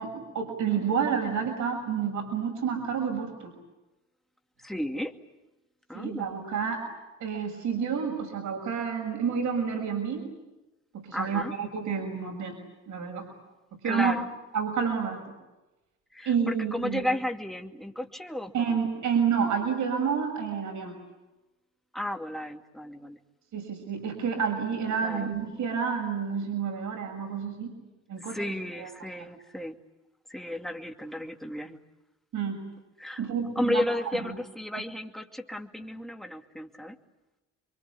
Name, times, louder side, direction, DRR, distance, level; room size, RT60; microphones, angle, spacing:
voice 1, 0.0-3.5 5.9-6.8 7.2-10.2 10.9-12.5 12.9-13.3 13.7-14.1 14.5-15.2 16.2-17.1 18.5-20.9 23.5-27.7 28.1-28.4 28.8-28.9 32.3-32.6 33.2-33.8, right 6 dB, 80° right, 1 dB, 6.6 m, -29 dB
voice 2, 4.6-5.1 5.9-6.3 11.1-11.5 13.8-14.3 16.1-18.8 21.9-23.2 25.0-25.3 28.3-29.8 30.3-31.8 33.0-33.3 33.6-37.0, left 1 dB, ahead, 4 dB, 2.4 m, -33 dB
28.0 x 24.0 x 8.6 m, 1.1 s
cardioid pair, 90°, 30 cm